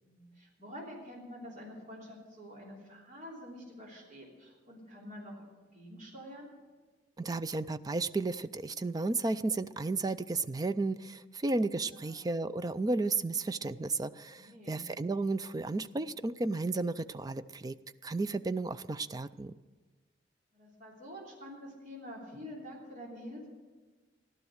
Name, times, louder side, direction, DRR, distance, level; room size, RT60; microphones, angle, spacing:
voice 1, 0.0-5.4 5.7-6.5 11.9-12.3 14.3-14.9 20.5-23.5, equal, 45° right, -4 dB, 3.2 m, -47 dB
voice 2, 7.2-17.8 18.0-19.5, right 3 dB, 20° right, 13 dB, 0.4 m, -33 dB
15.0 x 12.0 x 6.4 m, 1.3 s
head